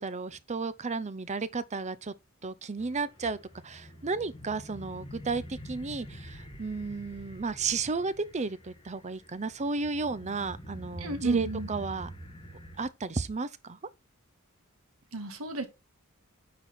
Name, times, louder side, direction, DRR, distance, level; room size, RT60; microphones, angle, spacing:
voice 1, 0.0-2.1 2.4-3.4 3.6-12.1 12.8-13.8, right 4 dB, 35° right, 0.6 m, -33 dB
sound 1, 2.8-12.9, equal, 25° left, 1.8 m, -46 dB
voice 2, 11.0-11.7 15.1-15.7, right 2 dB, 70° right, 1.8 m, -33 dB
10.0 x 4.3 x 4.4 m
head